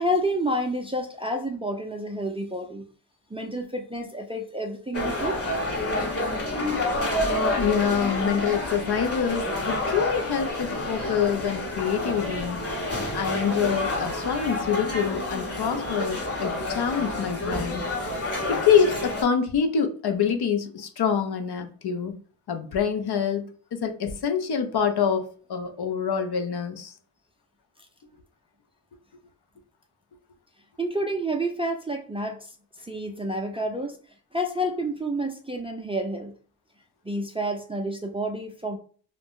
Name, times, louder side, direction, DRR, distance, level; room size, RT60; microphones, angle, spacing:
voice 1, 0.0-2.8 3.3-5.4 30.8-32.5 32.8-34.0 34.3-36.3 37.1-38.8, right 1 dB, 15° right, 0.3 m, -29 dB
sound 1, 4.9-19.2, left 1 dB, 30° left, 0.9 m, -29 dB
voice 2, 7.6-12.7 13.1-17.8 18.5-22.1 22.5-23.4 23.7-26.9, left 7 dB, 60° left, 0.6 m, -26 dB
2.5 x 2.1 x 3.5 m
cardioid pair, 80°, 45 cm